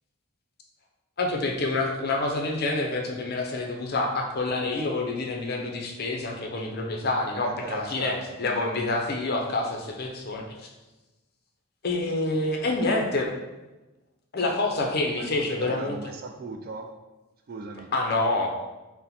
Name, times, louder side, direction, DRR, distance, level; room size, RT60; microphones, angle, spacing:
voice 1, 1.2-10.7 11.8-13.3 14.3-16.0 17.9-18.5, left 2 dB, 45° left, 2 dB, 0.5 m, -27 dB
voice 2, 7.4-8.6 12.7-12.8 15.1-16.9 17.5-17.9, right 4 dB, 40° right, 4 dB, 0.3 m, -38 dB
4.1 x 2.1 x 4.0 m, 1.1 s
head